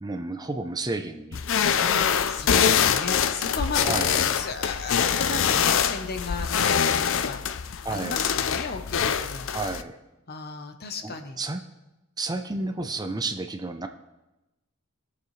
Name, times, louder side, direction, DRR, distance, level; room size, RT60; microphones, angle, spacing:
voice 1, 0.0-2.1 3.8-4.3 7.8-8.3 9.5-9.9 11.0-11.6 12.2-13.9, right 2 dB, 20° right, 7 dB, 0.6 m, -32 dB
sound 1, 1.3-9.8, left 8 dB, 65° left, 0.5 m, -24 dB
voice 2, 2.3-9.5 10.3-11.4, left 4 dB, 50° left, 7 dB, 0.9 m, -35 dB
20.0 x 7.0 x 3.3 m, 0.99 s
head